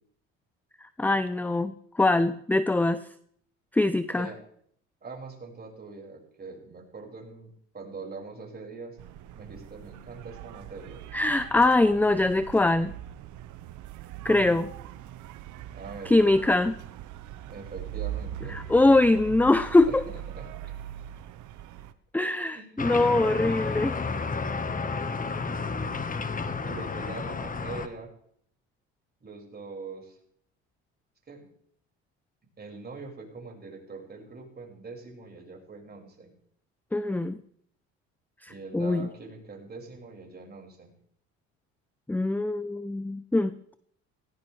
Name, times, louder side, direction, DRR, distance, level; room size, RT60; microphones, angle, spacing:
voice 1, 0.8-3.0 3.7-4.3 11.1-12.9 14.2-14.7 16.1-16.8 18.5-20.0 22.1-24.0 36.9-37.4 38.4-39.1 42.1-43.5, left 2 dB, 5° left, 13 dB, 0.6 m, -23 dB
voice 2, 5.0-9.0 9.3-11.0 14.2-14.6 15.7-16.1 17.5-18.7 19.3-19.6 19.9-20.5 22.5-22.7 26.6-28.1 29.2-30.2 31.3-31.5 32.6-36.3 38.5-40.9, right 3 dB, 30° right, 0 dB, 5.8 m, -43 dB
sound 1, 9.0-21.9, right 12 dB, 60° right, 1.1 m, -41 dB
sound 2, 22.8-27.9, left 4 dB, 25° left, 1.4 m, -31 dB
17.0 x 16.5 x 3.4 m, 0.65 s
supercardioid pair, 80°, 33 cm